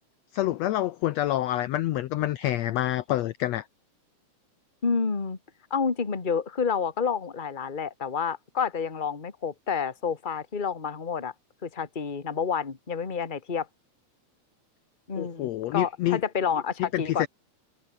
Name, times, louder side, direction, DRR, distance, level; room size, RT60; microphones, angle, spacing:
voice 1, 0.3-3.7 15.1-16.2 16.8-17.3, left 14 dB, 75° left, 1.6 m, -27 dB
voice 2, 4.8-5.4 5.7-11.3 11.6-13.7 15.1-17.3, left 6 dB, 20° left, 1.6 m, -29 dB
omnidirectional pair, 3.8 m